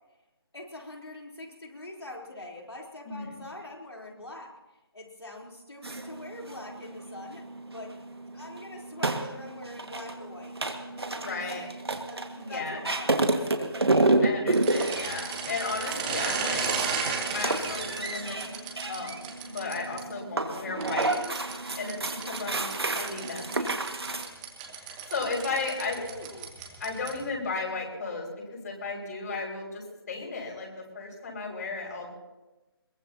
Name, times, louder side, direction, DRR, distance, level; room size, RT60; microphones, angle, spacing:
voice 1, 0.5-4.5 4.9-7.5 7.7-7.9 8.3-10.6 10.8-11.7 12.0-14.0 25.4-25.7 26.0-26.5, left 1 dB, 85° left, -1 dB, 3.8 m, -44 dB
voice 2, 3.0-3.4 11.2-11.7 12.4-12.8 14.2-16.7 17.3-18.6 18.9-21.2 21.8-23.7 24.8-26.0 26.8-32.1, left 4 dB, 45° left, -1 dB, 5.7 m, -35 dB
sound 1, 5.8-24.3, right 2 dB, 80° right, 1.8 m, -31 dB
sound 2, 14.5-20.0 20.8-27.3, right 5 dB, 20° right, 2.0 m, -35 dB
22.0 x 21.5 x 2.9 m, 1.1 s
figure-of-eight pair, 155°, 13 cm